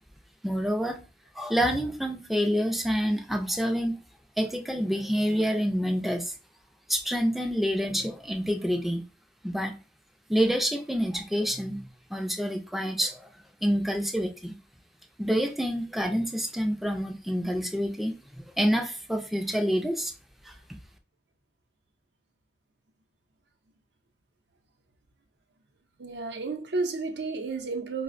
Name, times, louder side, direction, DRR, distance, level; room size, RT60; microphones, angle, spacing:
voice 1, 0.4-1.0 1.4-4.0 4.4-6.3 6.9-9.0 9.4-9.8 10.3-13.3 13.6-14.6 15.2-20.1 20.4-20.5, equal, ahead, 0.3 m, -27 dB
voice 2, 26.0-28.0, right 3 dB, 65° right, 0.5 m, -31 dB
4.8 x 2.0 x 2.5 m
head